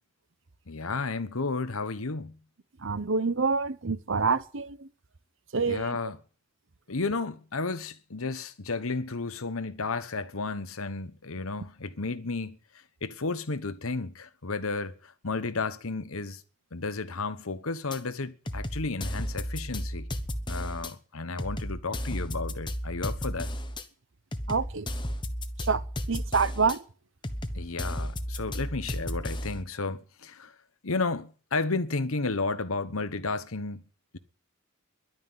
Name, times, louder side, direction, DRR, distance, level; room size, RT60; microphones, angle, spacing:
voice 1, 0.7-2.4 5.6-6.2 6.9-12.6 13.0-16.4 16.7-20.1 20.5-23.5 27.5-30.5 30.8-33.8, left 3 dB, 75° left, 1.2 m, -32 dB
voice 2, 2.8-4.9 5.5-6.0 24.5-24.9 25.6-26.8, right 4 dB, 60° right, 0.9 m, -27 dB
sound 1, 17.9-18.0 18.5-20.9 21.4-23.8 24.3-26.8 27.2-29.6, equal, 20° left, 1.1 m, -34 dB
12.0 x 9.5 x 9.4 m
head